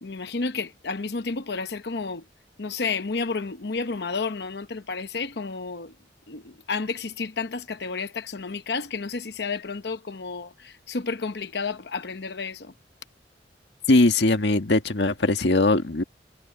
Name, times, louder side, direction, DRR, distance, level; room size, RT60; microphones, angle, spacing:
voice 1, 0.0-2.2 2.6-5.9 6.3-12.7, left 4 dB, 65° left, 0.9 m, -31 dB
voice 2, 13.9-16.0, left 2 dB, 80° left, 1.8 m, -20 dB
head